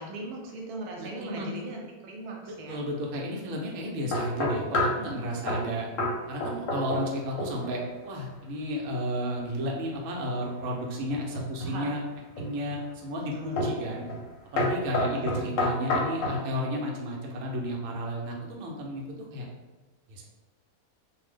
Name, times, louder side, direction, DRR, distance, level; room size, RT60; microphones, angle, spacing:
voice 1, 0.0-2.8 11.6-11.9 13.3-13.7 15.1-15.5, right 1 dB, 85° right, -1 dB, 1.1 m, -39 dB
voice 2, 1.0-1.5 2.5-5.9 6.3-12.0 12.4-14.1 14.5-19.0 19.3-19.5 20.1-20.2, equal, 70° right, -1 dB, 0.9 m, -33 dB
sound 1, 4.1-5.0 5.5-5.7 6.0-6.2 6.4-7.1 7.4-7.8 11.1-11.8 12.4-12.8 13.6-13.8 14.1-14.3 14.6-16.4, left 1 dB, 65° left, 1.0 m, -28 dB
2.5 x 2.1 x 3.4 m, 1.1 s
omnidirectional pair, 1.6 m